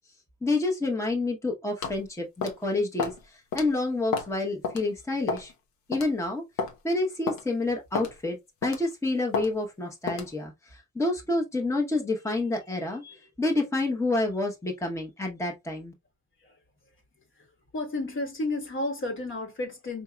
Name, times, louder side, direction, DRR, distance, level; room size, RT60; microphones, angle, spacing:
voice 1, 0.4-5.5 5.9-6.4 6.8-8.4 8.6-15.9, left 2 dB, 10° left, 0.9 m, -28 dB
sound 1, 1.8-2.0 2.4-2.6 3.0-3.2 3.5-3.7 4.1-4.3 4.6-4.8 5.3-5.5 5.9-6.1 6.6-6.7 7.3-7.4 7.9-8.1 8.6-8.9 9.3-9.5 10.1-10.3, left 5 dB, 85° left, 1.0 m, -30 dB
voice 2, 17.3-20.0, left 2 dB, 40° left, 1.4 m, -32 dB
4.8 x 2.7 x 2.2 m
cardioid pair, 90°, 30 cm